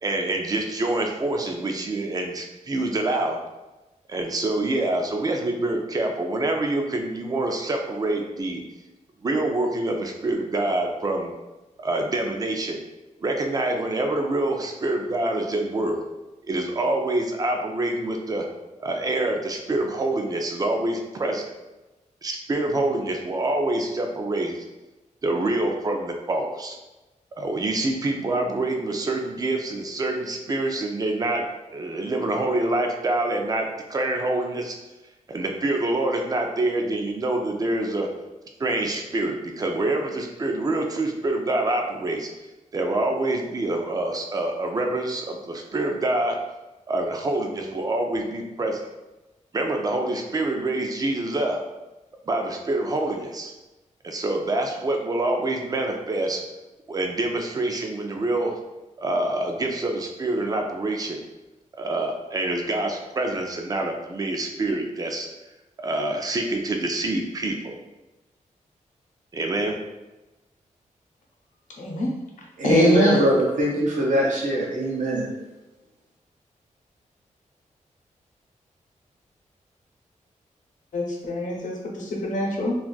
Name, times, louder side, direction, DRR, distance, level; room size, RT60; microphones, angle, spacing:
voice 1, 0.0-3.4 4.1-8.6 9.2-11.3 11.8-12.8 13.2-16.0 16.5-18.5 18.8-21.5 22.2-24.6 25.2-26.8 27.4-31.5 31.7-34.8 35.3-38.1 38.6-42.3 42.7-46.4 46.9-48.9 49.5-51.6 52.3-53.5 54.0-56.4 56.9-58.6 59.0-61.2 61.8-65.3 65.8-67.8 69.3-69.8, right 2 dB, 30° right, 3 dB, 0.4 m, -26 dB
voice 2, 71.8-72.1 72.6-73.3 80.9-82.8, left 1 dB, 75° left, -1 dB, 0.8 m, -23 dB
voice 3, 72.6-75.3, right 1 dB, 75° right, -3 dB, 0.6 m, -22 dB
2.5 x 2.4 x 3.8 m, 1.1 s
wide cardioid pair, 170°, 13 cm